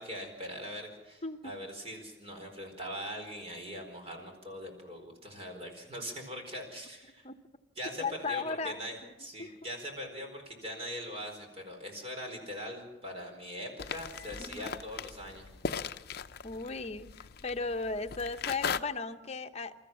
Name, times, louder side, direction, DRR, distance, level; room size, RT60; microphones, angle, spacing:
voice 1, 0.0-7.3 7.8-15.4, equal, 35° right, 3 dB, 4.4 m, -41 dB
voice 2, 1.2-1.5 7.2-7.4 8.0-9.1 9.4-9.5 14.4-14.7 16.4-19.7, left 4 dB, 35° left, 7 dB, 0.9 m, -36 dB
sound 1, 13.8-18.8, left 6 dB, 60° left, 0.6 m, -38 dB
28.5 x 14.0 x 7.5 m, 1.1 s
head